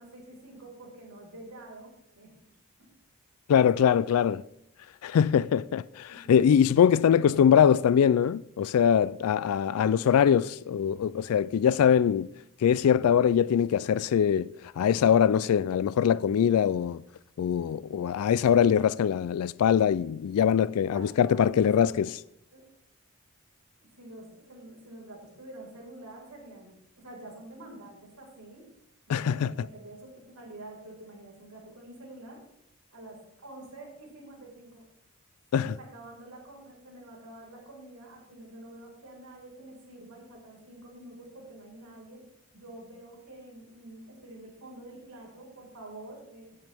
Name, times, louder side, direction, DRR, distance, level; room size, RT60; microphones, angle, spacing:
voice 1, 0.0-2.3 6.1-6.4 7.1-7.9 9.7-10.1 20.9-22.0 22.5-22.6 24.0-28.7 29.1-32.4 32.9-34.8 35.5-42.2 42.5-46.6, right 1 dB, 85° right, 4.9 m, -47 dB
voice 2, 3.5-4.4 5.0-12.3 12.6-14.5 14.8-17.0 17.4-22.1 29.1-29.5 35.5-35.7, left 8 dB, 80° left, 0.3 m, -23 dB
16.0 x 9.2 x 3.5 m
head